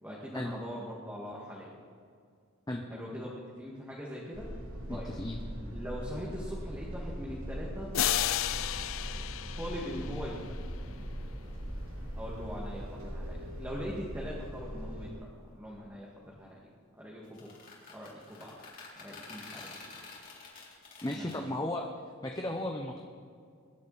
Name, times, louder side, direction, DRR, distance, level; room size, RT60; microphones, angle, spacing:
voice 1, 0.0-1.7 2.9-4.5 4.9-5.1 5.6-7.9 9.6-10.5 12.2-15.3 15.5-16.6 17.0-17.5 17.9-18.5 19.0-19.9 21.1-21.4, equal, 10° right, -5 dB, 2.1 m, -41 dB
sound 1, 4.3-15.1, equal, 85° right, 3.3 m, -40 dB
voice 2, 4.9-5.4 21.0-21.9 22.2-23.0, left 1 dB, 20° left, 2 dB, 0.9 m, -35 dB
sound 2, 7.9-10.6, left 12 dB, 70° left, 0.5 m, -32 dB
sound 3, 17.2-21.4, left 4 dB, 40° left, 3.8 m, -48 dB
22.5 x 11.0 x 4.2 m, 2.2 s
head